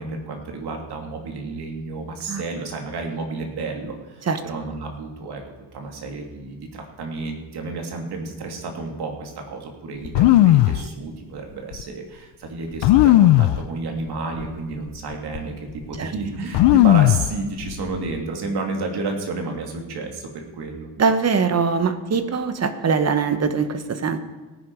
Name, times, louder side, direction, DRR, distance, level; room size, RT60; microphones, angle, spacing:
voice 1, 0.0-5.4 5.7-20.9, right 3 dB, 65° right, 2 dB, 2.7 m, -31 dB
sound 1, 10.1-10.8 11.7-11.8 12.8-13.6 14.4-14.5 14.9-15.4 16.5-17.3 17.6-18.2, left 14 dB, 85° left, 0.6 m, -15 dB
voice 2, 21.0-24.2, right 5 dB, 35° right, 9 dB, 1.2 m, -22 dB
17.5 x 10.5 x 4.7 m, 1.3 s
cardioid pair, 120°, 42 cm